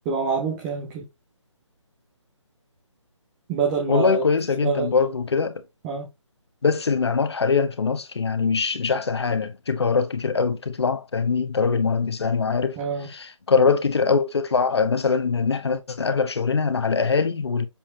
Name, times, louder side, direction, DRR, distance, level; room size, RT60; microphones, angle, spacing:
voice 1, 0.1-1.0 3.5-4.2 4.6-5.0 5.8-6.1 12.8-13.1, right 5 dB, 5° right, 0.3 m, -26 dB
voice 2, 3.9-5.6 6.6-17.7, left 5 dB, 55° left, 1.2 m, -22 dB
7.4 x 4.2 x 3.1 m
figure-of-eight pair, 150°, 16 cm